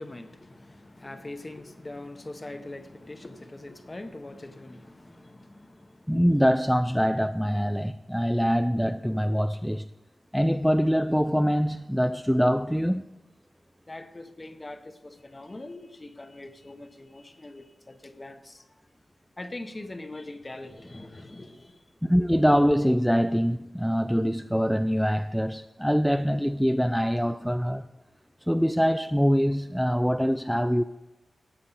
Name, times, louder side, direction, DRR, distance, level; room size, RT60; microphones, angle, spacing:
voice 1, 0.0-6.2 13.9-18.7 19.4-21.9 22.2-22.3, left 2 dB, 25° left, 0.9 m, -42 dB
voice 2, 6.1-9.9 10.3-13.0 22.0-27.9 28.5-30.8, equal, ahead, 0.3 m, -24 dB
14.0 x 8.5 x 4.0 m
wide cardioid pair, 80°, 0 cm